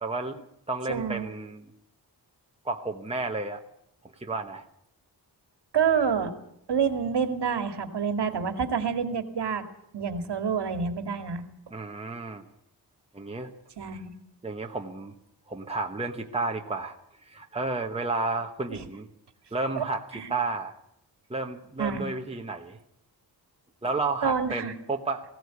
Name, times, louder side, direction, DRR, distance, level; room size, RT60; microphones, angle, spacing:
voice 1, 0.0-1.7 2.6-3.6 4.2-4.6 11.7-12.4 13.1-13.5 14.4-15.1 15.5-17.0 17.3-19.1 19.5-20.0 20.3-20.8 21.3-22.8 23.8-25.2, right 3 dB, 15° right, 3 dB, 1.3 m, -31 dB
voice 2, 0.9-1.3 5.7-6.3 6.7-9.6 9.9-11.4 13.8-14.1 18.7-18.8 19.8-19.9 20.1-20.3 21.8-22.0 24.2-24.7, right 6 dB, 80° right, 8 dB, 2.3 m, -27 dB
19.5 x 17.0 x 8.3 m, 0.75 s
wide cardioid pair, 165°, 40 cm